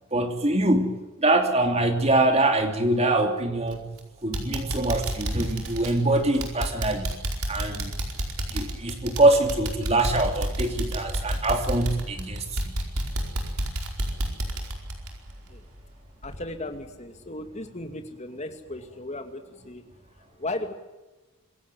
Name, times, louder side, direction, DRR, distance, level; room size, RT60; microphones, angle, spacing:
voice 1, 0.1-3.9 4.2-7.1 7.5-7.9 8.5-12.7, right 2 dB, 30° right, 6 dB, 2.9 m, -24 dB
sound 1, 3.7-4.0 4.3-15.9 16.2-16.4 16.8-16.9, right 1 dB, 85° right, 4.8 m, -30 dB
voice 2, 16.2-19.8 20.4-20.7, left 2 dB, 30° left, 7 dB, 2.4 m, -36 dB
26.0 x 15.5 x 9.6 m, 1.1 s
head